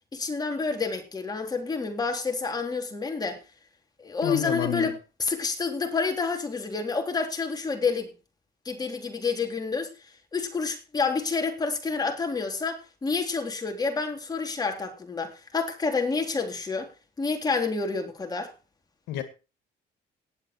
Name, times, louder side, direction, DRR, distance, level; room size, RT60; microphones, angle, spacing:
voice 1, 0.1-3.4 4.0-8.1 8.6-9.9 10.3-16.9 17.2-18.5, left 4 dB, 25° left, 3.5 m, -29 dB
voice 2, 4.2-4.9 19.1-19.2, left 11 dB, 85° left, 2.0 m, -29 dB
18.5 x 7.9 x 4.6 m
cardioid pair, 110°, 17 cm